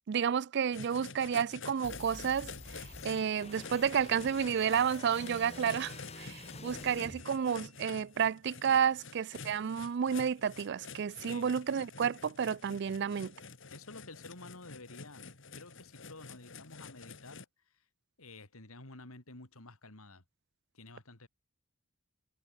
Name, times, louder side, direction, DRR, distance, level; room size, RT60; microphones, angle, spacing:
voice 1, 0.1-13.3, right 7 dB, 50° right, 0.4 m, -31 dB
sound 1, 0.7-17.4, left 4 dB, 60° left, 2.2 m, -49 dB
sound 2, 1.8-7.9, left 2 dB, 30° left, 6.1 m, -48 dB
voice 2, 11.2-11.5 12.8-13.0 13.7-15.3 15.5-17.5 17.7-17.8 18.2-20.2 20.7-21.3, left 2 dB, 75° left, 3.2 m, -51 dB
head